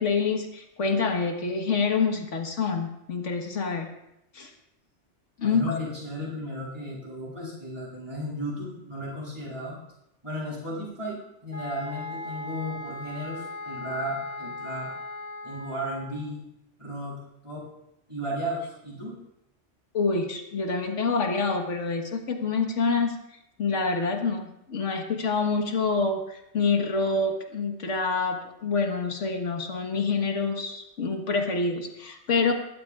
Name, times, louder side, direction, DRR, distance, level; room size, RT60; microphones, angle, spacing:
voice 1, 0.0-3.9 4.3-4.5 5.4-5.8 19.9-23.2 23.6-32.5, left 4 dB, 85° left, 4 dB, 1.7 m, -27 dB
voice 2, 5.4-9.8 10.2-14.9 15.4-16.4 16.8-17.7 18.1-19.1, equal, 25° right, -7 dB, 7.4 m, -34 dB
sound 1, 11.5-16.2, left 2 dB, 65° left, 5.6 m, -38 dB
22.0 x 15.5 x 2.4 m, 0.82 s
omnidirectional pair, 1.2 m